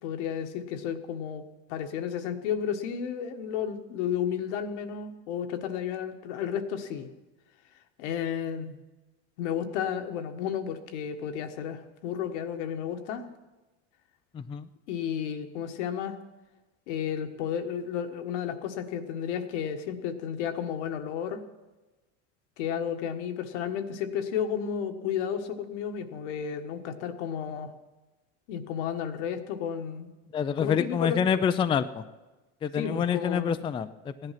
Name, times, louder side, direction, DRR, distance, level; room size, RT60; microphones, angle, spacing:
voice 1, 0.0-1.4 1.7-7.1 8.0-8.8 9.4-13.3 14.9-16.2 16.9-21.4 22.6-27.7 28.5-30.1 30.6-31.4 32.7-33.7, left 8 dB, 75° left, 6 dB, 1.4 m, -32 dB
voice 2, 14.3-14.7 30.3-32.0 32.6-34.3, left 7 dB, 15° left, 11 dB, 0.4 m, -27 dB
15.5 x 10.5 x 5.8 m, 1.1 s
supercardioid pair, 125°, 35 cm